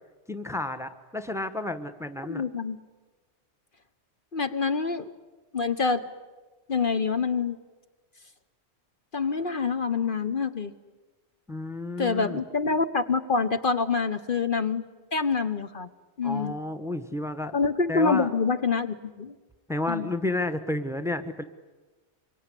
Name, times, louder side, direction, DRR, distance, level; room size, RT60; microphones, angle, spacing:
voice 1, 0.3-2.4 11.5-12.4 16.2-17.5 17.9-18.3 19.7-21.4, left 2 dB, 5° right, 10 dB, 1.2 m, -31 dB
voice 2, 2.2-2.8 4.3-5.1 5.5-6.1 6.7-7.6 9.1-10.7 12.0-14.8 15.1-15.9 16.2-16.5 17.5-19.3 19.9-20.1, left 4 dB, 50° left, 9 dB, 1.2 m, -26 dB
25.5 x 23.5 x 9.9 m, 1.2 s
omnidirectional pair, 1.2 m